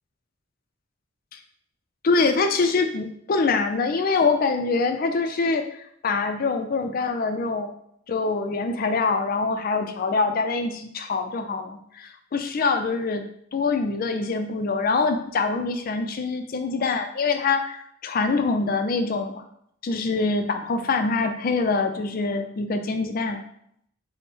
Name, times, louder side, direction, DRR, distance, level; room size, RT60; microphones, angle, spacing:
voice 1, 2.0-5.6 6.0-7.7 8.1-13.2 13.5-19.4 19.8-23.4, left 4 dB, 45° left, 6 dB, 0.4 m, -24 dB
3.5 x 2.1 x 4.1 m, 0.71 s
head